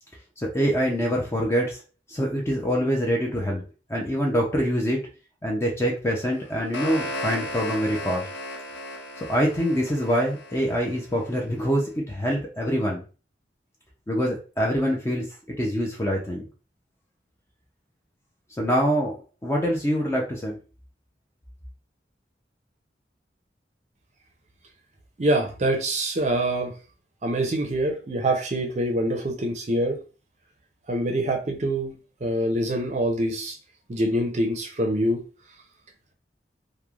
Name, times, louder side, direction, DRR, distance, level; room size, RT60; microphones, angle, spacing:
voice 1, 0.4-1.8 2.1-3.6 3.9-5.0 5.4-8.3 9.3-13.0 14.1-16.4 18.6-19.1 19.4-20.6, equal, 15° left, -1 dB, 0.4 m, -25 dB
sound 1, 6.3-11.4, left 1 dB, 85° left, 0.6 m, -35 dB
voice 2, 25.2-26.7 27.2-30.0 30.9-31.9 32.2-33.6 33.9-35.2, right 1 dB, 40° right, 3 dB, 0.5 m, -25 dB
3.1 x 2.1 x 2.3 m, 0.35 s
head